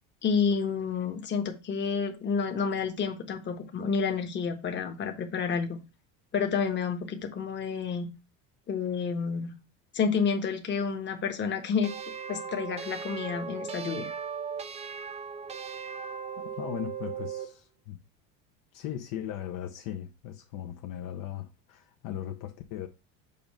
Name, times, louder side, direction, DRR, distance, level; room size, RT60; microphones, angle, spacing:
voice 1, 0.2-5.8 6.3-8.1 8.7-9.5 9.9-11.9 12.3-14.1, left 6 dB, 30° left, 1.2 m, -29 dB
sound 1, 11.8-17.5, right 6 dB, 20° right, 0.4 m, -38 dB
voice 2, 16.4-18.0 18.7-22.9, left 11 dB, 55° left, 0.9 m, -38 dB
6.9 x 2.6 x 5.3 m
cardioid pair, 130°, 38 cm